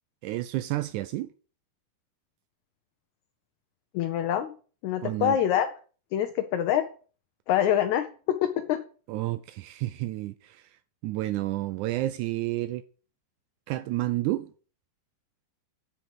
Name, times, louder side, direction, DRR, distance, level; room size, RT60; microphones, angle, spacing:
voice 1, 0.2-1.3 5.0-5.4 9.1-10.7 11.0-12.8 13.7-14.5, right 16 dB, 90° right, 1.7 m, -30 dB
voice 2, 3.9-4.5 4.8-5.7 6.1-6.8 7.5-8.8, left 10 dB, 75° left, 1.8 m, -25 dB
8.1 x 6.3 x 7.7 m
omnidirectional pair, 4.1 m